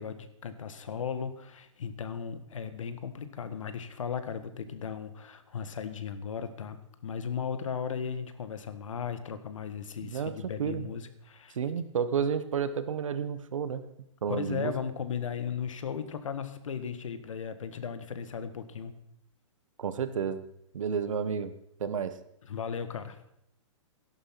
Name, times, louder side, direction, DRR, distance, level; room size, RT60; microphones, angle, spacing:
voice 1, 0.0-11.6 14.3-19.0 22.5-23.2, left 7 dB, 75° left, 11 dB, 1.6 m, -36 dB
voice 2, 10.0-10.9 11.5-13.9 14.2-14.7 19.8-20.4 20.7-22.2, right 7 dB, 80° right, 12 dB, 1.3 m, -31 dB
12.0 x 11.5 x 5.9 m, 0.77 s
hypercardioid pair, 170°, 16 cm